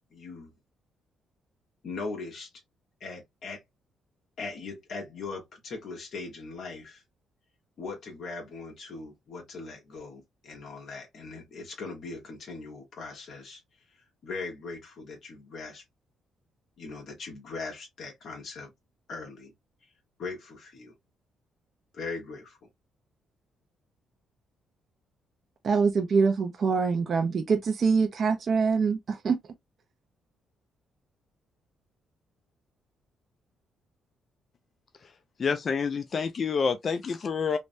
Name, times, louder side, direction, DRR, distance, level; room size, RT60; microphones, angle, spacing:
voice 1, 0.1-0.5 1.8-2.5 3.0-3.6 4.4-7.0 7.8-13.6 14.2-15.8 16.8-18.7 19.1-19.5 20.2-20.9 21.9-22.6, left 3 dB, 65° left, 1.2 m, -40 dB
voice 2, 25.6-29.4, right 5 dB, 50° right, 0.5 m, -24 dB
voice 3, 35.4-37.6, left 5 dB, 45° left, 0.4 m, -28 dB
3.3 x 2.1 x 2.6 m
cardioid pair, 90°, 0 cm